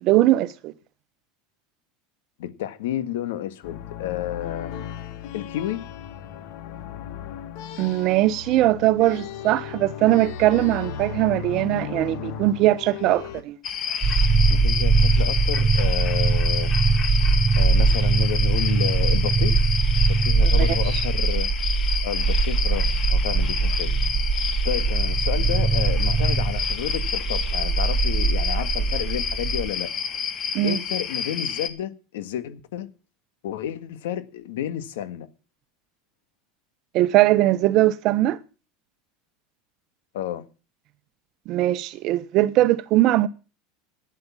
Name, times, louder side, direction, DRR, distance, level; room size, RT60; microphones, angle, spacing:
voice 1, 0.0-0.7 7.8-13.6 20.4-20.7 30.5-30.8 36.9-38.4 41.5-43.3, right 15 dB, 50° right, 1.1 m, -20 dB
voice 2, 2.4-4.9 5.3-5.9 14.5-16.7 17.6-19.7 19.9-21.5 22.0-23.9 24.6-30.2 30.6-32.9 33.4-35.3 40.1-40.5, left 11 dB, 85° left, 1.7 m, -31 dB
sound 1, 3.6-13.4, left 8 dB, 65° left, 1.7 m, -36 dB
sound 2, 13.6-31.7, left 7 dB, 35° left, 1.9 m, -29 dB
sound 3, 14.0-29.7, right 4 dB, 25° right, 1.6 m, -21 dB
12.0 x 9.7 x 7.2 m
supercardioid pair, 120°, 0 cm